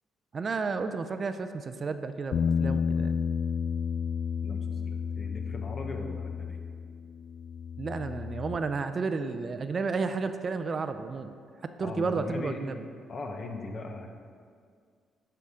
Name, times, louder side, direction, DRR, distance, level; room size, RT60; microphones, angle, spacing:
voice 1, 0.3-3.2 7.8-11.3 11.8-12.8, right 4 dB, 40° right, 10 dB, 0.4 m, -32 dB
Bass guitar, 2.3-8.6, left 6 dB, 65° left, 0.4 m, -31 dB
voice 2, 4.4-6.6 11.8-12.6 13.1-14.1, left 2 dB, 45° left, 3 dB, 1.0 m, -39 dB
10.0 x 5.6 x 3.7 m, 2.1 s
cardioid pair, 90°, 0 cm